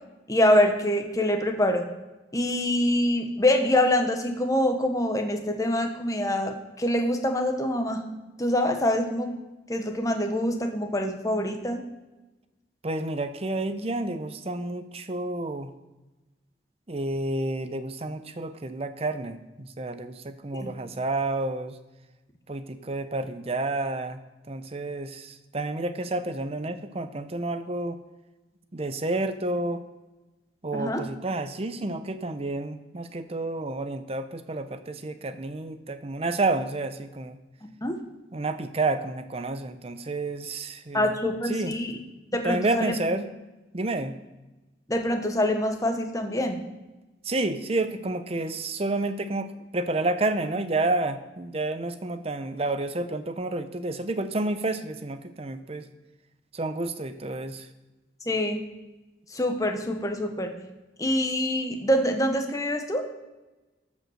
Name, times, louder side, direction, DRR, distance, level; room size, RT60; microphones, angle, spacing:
voice 1, 0.3-1.9 2.3-8.0 8.4-9.3 9.7-11.8 20.5-20.7 30.7-31.0 37.8-38.0 40.9-42.0 42.3-43.0 44.9-46.7 58.3-58.6 59.3-60.5 61.0-63.0, left 1 dB, 20° left, 5 dB, 1.2 m, -25 dB
voice 2, 12.8-15.7 16.9-21.8 22.5-24.2 24.5-28.0 28.7-29.8 30.6-37.4 38.3-41.1 41.5-41.7 42.3-43.3 43.7-44.1 47.2-55.9 56.5-57.7, right 2 dB, 35° right, 10 dB, 0.7 m, -30 dB
13.5 x 5.4 x 6.4 m, 1.1 s
head